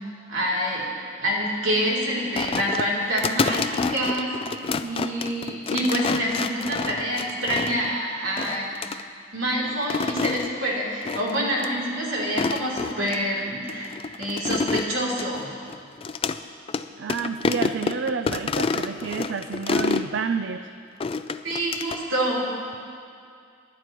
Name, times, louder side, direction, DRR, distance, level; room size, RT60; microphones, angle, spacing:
voice 1, 0.3-0.8 1.2-8.7 9.3-13.9 14.2-15.6 21.4-22.5, equal, 80° right, -4 dB, 3.2 m, -27 dB
sound 1, 2.4-7.9 8.4-9.0 9.7-10.5 11.0-11.4 11.6-11.7 12.2-13.2 13.7-16.4 16.7-16.8 17.1-20.1 21.0-22.0, left 4 dB, 30° left, 0.3 m, -28 dB
voice 2, 17.0-20.7, right 5 dB, 65° right, 8 dB, 0.4 m, -29 dB
24.0 x 11.0 x 3.0 m, 2.3 s
head